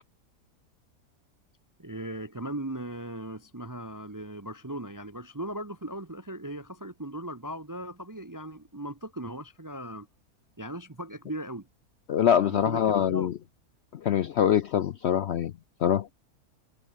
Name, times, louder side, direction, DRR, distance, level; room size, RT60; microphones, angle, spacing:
voice 1, 1.8-10.1 10.6-11.7 12.4-13.4, right 1 dB, 20° right, 0.5 m, -38 dB
voice 2, 12.1-13.3 13.9-15.5 15.8-16.1, left 9 dB, 65° left, 0.7 m, -24 dB
omnidirectional pair, 1.6 m